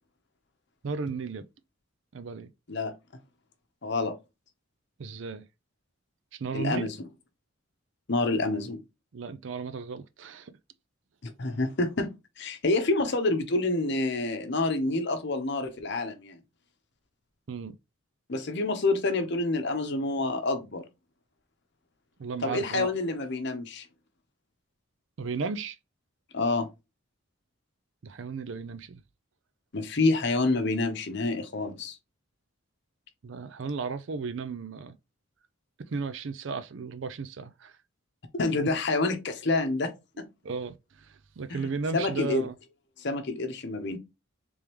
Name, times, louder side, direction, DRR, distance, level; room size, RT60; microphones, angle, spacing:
voice 1, 0.8-1.4 2.1-2.5 5.0-5.4 6.4-6.9 9.1-10.5 17.5-17.8 22.2-22.9 25.2-25.8 28.0-29.0 33.2-34.9 35.9-37.7 40.4-40.7 41.4-42.5, right 5 dB, 60° right, 0.4 m, -34 dB
voice 2, 3.8-4.1 6.5-7.0 8.1-8.8 11.2-12.1 12.4-16.4 18.3-20.8 22.4-23.9 26.3-26.7 29.7-32.0 38.3-40.3 41.5-42.5 43.0-44.0, left 2 dB, 55° left, 0.8 m, -28 dB
3.5 x 3.4 x 3.0 m
head